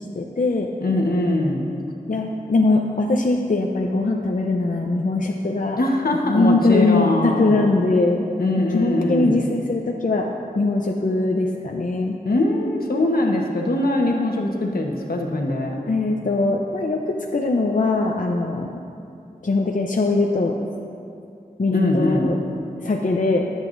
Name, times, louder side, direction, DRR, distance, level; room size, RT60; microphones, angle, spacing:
voice 1, 0.0-0.7 2.1-5.8 6.3-8.3 8.6-10.3 10.6-12.2 15.9-18.7 19.4-20.5 21.6-22.4 22.8-23.5, left 2 dB, 60° left, 1 dB, 0.7 m, -21 dB
voice 2, 0.8-1.7 5.8-7.6 8.4-9.4 12.2-15.7 21.7-22.4, left 1 dB, 80° left, 1 dB, 1.2 m, -22 dB
23.0 x 8.1 x 2.6 m, 2.5 s
wide cardioid pair, 55°, 15 cm